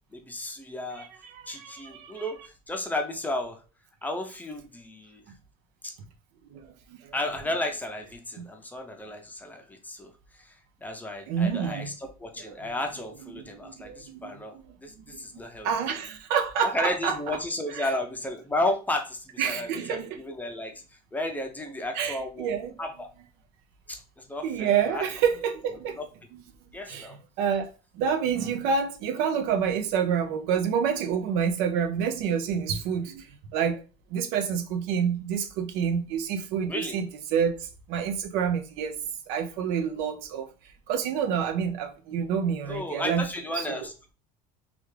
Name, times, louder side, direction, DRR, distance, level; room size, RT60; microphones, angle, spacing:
voice 1, 0.1-1.1 1.5-3.6 4.0-5.3 5.8-5.9 7.1-10.5 10.8-15.7 16.6-20.8 21.1-22.5 22.8-23.1 23.9-25.0 26.0-26.1 26.7-27.2 36.7-37.0 42.7-44.1, left 1 dB, 10° left, 0.5 m, -33 dB
voice 2, 1.0-2.1 6.5-7.1 8.4-8.5 11.3-11.9 13.5-14.3 15.1-15.2 15.6-17.2 17.7-17.9 19.4-20.2 21.9-22.9 24.4-26.0 26.3-26.4 26.9-27.1 27.4-27.7 27.9-33.8 34.1-40.5 40.9-43.3 43.6-43.9, right 7 dB, 85° right, 0.6 m, -28 dB
3.4 x 2.4 x 3.2 m
cardioid pair, 130°, 16 cm